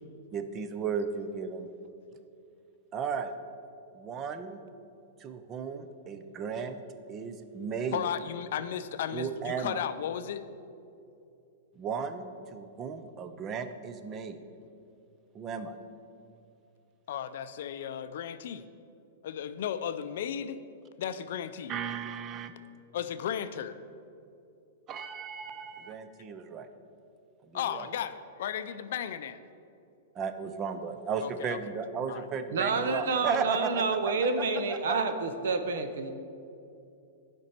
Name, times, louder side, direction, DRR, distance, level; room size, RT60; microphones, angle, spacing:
voice 1, 0.3-1.7 2.9-3.3 3.9-4.6 5.2-6.8 7.1-8.0 9.1-9.8 11.8-14.4 15.3-15.8 21.7-22.5 24.9-26.7 27.4-27.9 30.2-33.8 34.5-35.0, right 6 dB, 20° right, 9 dB, 0.5 m, -35 dB
voice 2, 7.9-10.4 17.1-18.7 19.2-20.6 21.0-21.7 22.9-23.8 27.5-29.4 31.2-31.6 32.1-32.2, left 9 dB, 65° left, 11 dB, 0.4 m, -35 dB
voice 3, 32.5-36.1, right 4 dB, 80° right, 8 dB, 0.8 m, -29 dB
11.5 x 5.2 x 4.3 m, 2.7 s
supercardioid pair, 160°, 0 cm